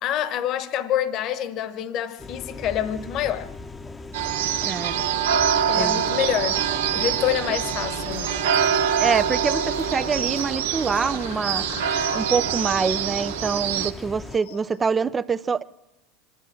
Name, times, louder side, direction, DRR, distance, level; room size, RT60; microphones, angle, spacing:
voice 1, 0.0-3.5 5.7-6.6 6.9-8.3, left 10 dB, 50° left, 1.3 m, -26 dB
sound 1, 2.2-14.4, left 3 dB, 15° left, 1.0 m, -38 dB
sound 2, 4.1-13.9, right 8 dB, 80° right, 1.0 m, -25 dB
voice 2, 4.6-5.0 5.8-6.0 9.0-15.6, right 5 dB, 20° right, 0.7 m, -25 dB
sound 3, 7.5-15.0, left 11 dB, 75° left, 1.0 m, -44 dB
24.0 x 12.0 x 8.9 m
hypercardioid pair, 100°, 0 cm